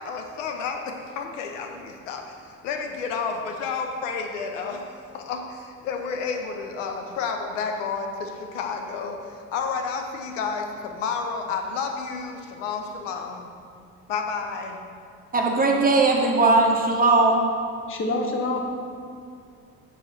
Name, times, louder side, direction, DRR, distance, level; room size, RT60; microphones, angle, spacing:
voice 1, 0.1-0.8 1.2-1.7 2.1-2.2 2.6-3.3 3.6-4.8 5.3-5.4 5.9-8.1 8.6-9.1 9.5-10.6 11.0-12.3 12.6-12.8 13.0-13.3 14.1-14.7, left 5 dB, 65° left, 4 dB, 0.6 m, -29 dB
voice 2, 15.3-17.4, right 3 dB, 20° right, 1 dB, 0.8 m, -19 dB
voice 3, 17.9-18.7, left 2 dB, 30° left, 2 dB, 0.9 m, -26 dB
6.1 x 4.2 x 4.9 m, 2.3 s
figure-of-eight pair, 55°, 41 cm